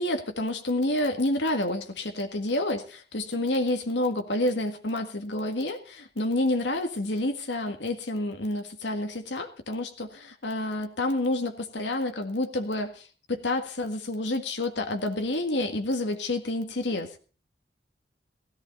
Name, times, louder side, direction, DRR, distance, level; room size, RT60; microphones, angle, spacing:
voice 1, 0.0-17.2, left 1 dB, 80° left, 5 dB, 1.8 m, -29 dB
16.5 x 14.5 x 4.1 m, 0.37 s
head